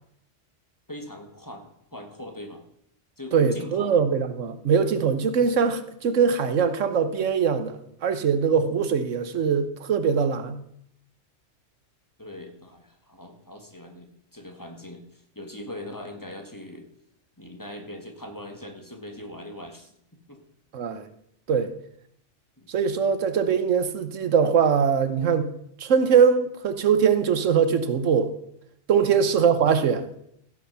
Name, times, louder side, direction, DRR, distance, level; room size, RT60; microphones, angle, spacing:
voice 1, 0.9-2.6 3.2-4.0 12.2-16.9 17.4-19.9 20.3-20.4 22.6-22.7 29.0-29.2, left 1 dB, 15° left, 4 dB, 1.6 m, -41 dB
voice 2, 3.3-10.6 20.7-21.1 21.5-21.7 22.7-25.5 25.8-28.3 28.9-30.0, right 6 dB, 85° right, 11 dB, 1.3 m, -22 dB
15.5 x 6.5 x 5.8 m, 0.72 s
omnidirectional pair, 1.3 m